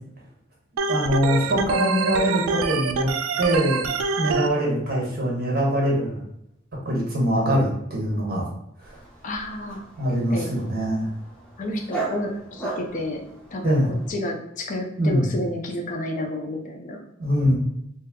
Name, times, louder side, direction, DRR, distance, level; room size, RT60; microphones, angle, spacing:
Organ, 0.8-4.5, right 4 dB, 80° right, 0.3 m, -26 dB
voice 1, 0.9-3.1 3.4-3.9 4.2-6.2 6.8-8.5 10.0-11.1 13.6-13.9 15.0-15.3 17.2-17.5, equal, 50° right, -3 dB, 1.1 m, -23 dB
Dog, 8.8-14.1, right 4 dB, 5° left, 0.7 m, -37 dB
voice 2, 9.2-9.8 10.3-10.5 11.6-13.2 13.5-17.0, left 1 dB, 40° left, 2 dB, 0.4 m, -30 dB
2.6 x 2.2 x 3.6 m, 0.78 s
head